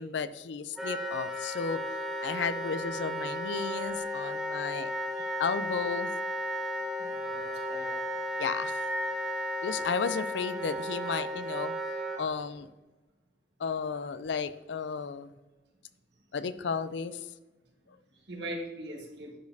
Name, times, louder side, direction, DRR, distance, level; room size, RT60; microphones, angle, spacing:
voice 1, 0.0-1.8 2.2-4.9 5.4-6.1 8.4-8.8 9.6-11.7 12.2-12.7 13.6-15.3 16.3-17.2, left 5 dB, 80° left, 14 dB, 0.4 m, -33 dB
Wind instrument woodwind instrument, 0.8-12.2, equal, ahead, 0.9 m, -34 dB
voice 2, 7.0-7.9 18.3-19.4, right 1 dB, 75° right, 1 dB, 1.5 m, -41 dB
11.0 x 5.2 x 2.7 m, 1.1 s
head